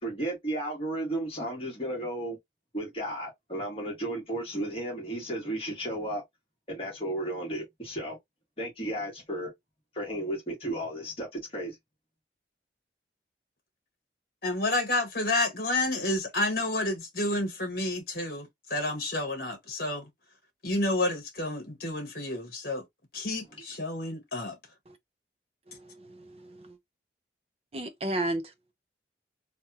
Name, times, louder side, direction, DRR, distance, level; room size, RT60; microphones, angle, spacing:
voice 1, 0.0-2.4 2.7-6.2 6.7-8.2 8.6-9.5 9.9-11.7, right 1 dB, 30° left, 1.6 m, -34 dB
voice 2, 14.4-20.1 20.6-22.8 23.1-24.6, left 2 dB, 55° left, 1.4 m, -30 dB
voice 3, 25.7-26.8 27.7-28.4, right 1 dB, 35° right, 0.5 m, -34 dB
3.4 x 2.3 x 2.8 m
head